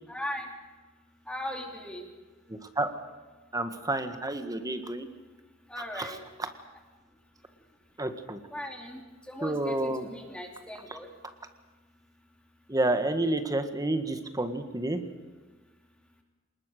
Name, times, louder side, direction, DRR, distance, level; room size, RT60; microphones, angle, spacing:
voice 1, 0.1-0.5 1.3-2.1 5.7-6.2 8.5-11.1, left 1 dB, 5° left, 2 dB, 3.3 m, -38 dB
voice 2, 2.5-2.9 3.5-5.1 5.9-6.1 6.4-6.5 8.0-8.4 9.4-10.1 12.7-15.0, right 2 dB, 20° right, 8 dB, 1.7 m, -29 dB
26.0 x 20.5 x 6.7 m, 1.3 s
head